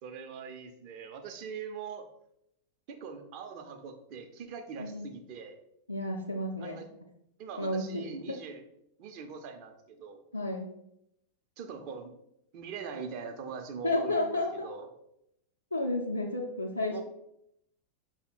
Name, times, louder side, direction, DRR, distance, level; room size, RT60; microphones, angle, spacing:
voice 1, 0.0-2.1 2.9-5.5 6.6-6.9 7.4-8.6 9.0-10.2 11.6-12.1 12.5-14.9 16.9-17.0, right 6 dB, 45° right, 5 dB, 0.6 m, -42 dB
voice 2, 4.8-5.1 5.9-6.8 7.6-8.1 10.3-10.7 13.8-14.7 15.7-17.0, left 2 dB, 85° left, -3 dB, 0.5 m, -31 dB
5.5 x 2.1 x 4.2 m, 0.78 s
figure-of-eight pair, 90°, 0 cm